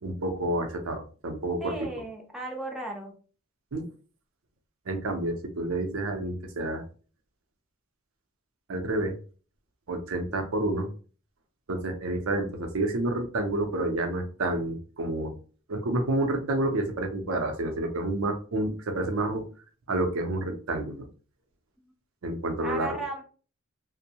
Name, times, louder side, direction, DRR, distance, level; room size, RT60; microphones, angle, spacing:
voice 1, 0.0-1.7 3.7-3.9 4.9-6.8 8.7-9.2 9.9-10.9 11.7-15.3 15.7-19.5 19.9-21.1 22.2-23.0, right 2 dB, 75° right, 5 dB, 0.5 m, -29 dB
voice 2, 1.6-3.1 22.6-23.2, right 2 dB, 5° right, 0 dB, 0.4 m, -35 dB
2.6 x 2.0 x 2.8 m, 0.39 s
head